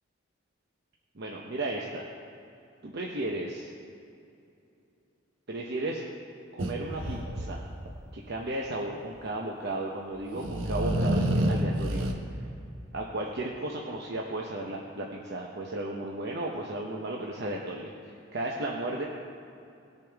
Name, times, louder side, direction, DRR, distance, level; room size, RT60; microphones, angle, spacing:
voice 1, 1.1-2.1 2.8-3.7 5.5-6.0 6.5-7.6 8.1-12.5 12.9-19.1, right 2 dB, 55° right, -1 dB, 0.8 m, -34 dB
sound 1, 6.6-7.9 10.1-12.1, right 1 dB, 85° right, 1.1 m, -28 dB
18.5 x 6.8 x 3.5 m, 2.7 s
head